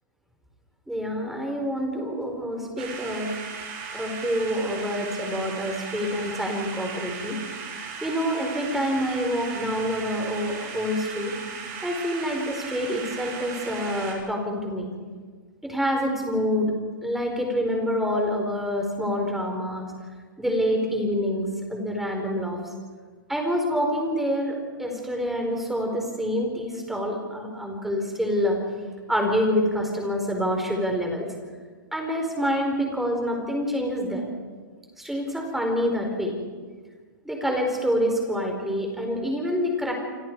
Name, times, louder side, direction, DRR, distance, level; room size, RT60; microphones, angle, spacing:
voice 1, 0.9-3.3 3.9-7.4 8.0-11.3 11.8-14.9 15.6-16.7 17.0-19.9 20.4-22.6 23.3-28.6 29.1-31.3 31.9-34.3 35.0-36.3 37.2-39.9, equal, ahead, 2 dB, 4.6 m, -27 dB
sound 1, 2.8-14.1, right 5 dB, 35° right, 5.9 m, -37 dB
28.5 x 25.0 x 4.8 m, 1.5 s
hypercardioid pair, 145°, 11 cm